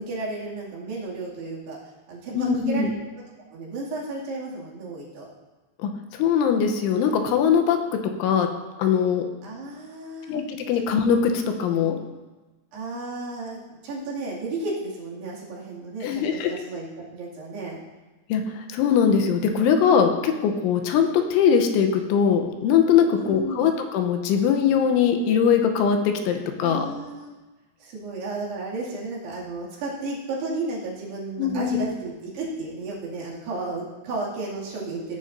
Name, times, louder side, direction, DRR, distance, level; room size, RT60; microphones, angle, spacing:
voice 1, 0.0-1.8 2.1-2.9 3.5-5.3 9.4-10.4 12.7-16.8 17.1-17.8 23.2-23.7 26.6-27.3 27.8-35.2, right 2 dB, 65° right, -5 dB, 4.3 m, -33 dB
voice 2, 2.3-2.9 5.8-7.8 8.2-8.5 8.8-9.2 10.3-12.0 16.0-16.5 18.3-26.9 31.4-31.8, left 7 dB, 85° left, 5 dB, 3.2 m, -21 dB
17.5 x 10.5 x 2.7 m, 1.2 s
omnidirectional pair, 5.5 m